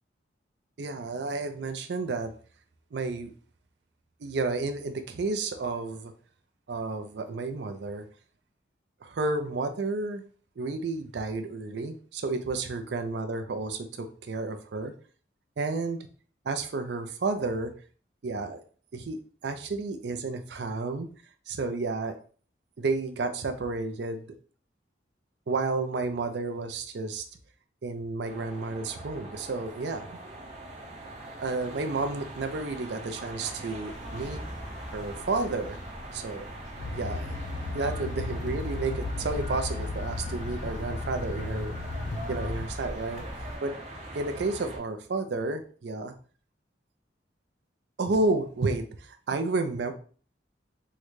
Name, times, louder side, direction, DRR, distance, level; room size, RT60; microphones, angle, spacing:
voice 1, 0.8-2.3 2.9-3.3 4.2-6.1 6.7-8.1 9.0-10.2 10.6-14.9 15.6-16.0 16.5-17.7 18.2-18.6 18.9-21.1 21.5-22.1 22.8-24.3 25.5-27.2 27.8-30.1 31.4-34.4 34.9-35.8 36.1-36.5 36.9-37.4 37.7-41.8 42.3-43.2 43.6-43.7 44.1-46.1 48.0-49.9, right 3 dB, 65° right, 7 dB, 0.4 m, -31 dB
sound 1, 28.2-44.8, right 1 dB, 40° right, 0.7 m, -42 dB
sound 2, 33.8-43.6, equal, 85° left, 0.9 m, -43 dB
sound 3, 36.8-42.7, left 3 dB, 45° left, 0.3 m, -35 dB
3.7 x 2.2 x 3.1 m, 0.41 s
head